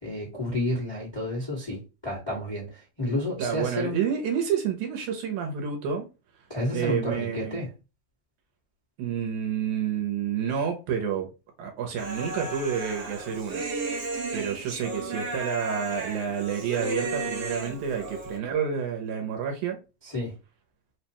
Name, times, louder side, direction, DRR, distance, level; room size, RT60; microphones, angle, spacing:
voice 1, 0.0-4.0 6.5-7.7 20.0-20.3, left 1 dB, 20° left, 0.7 m, -31 dB
voice 2, 3.4-6.1 6.7-7.6 9.0-11.3 11.6-13.6 13.9-19.8, right 7 dB, 80° right, 2.1 m, -29 dB
Human voice, 12.0-18.4, right 2 dB, 60° right, 1.1 m, -33 dB
4.7 x 2.2 x 2.8 m
omnidirectional pair, 3.4 m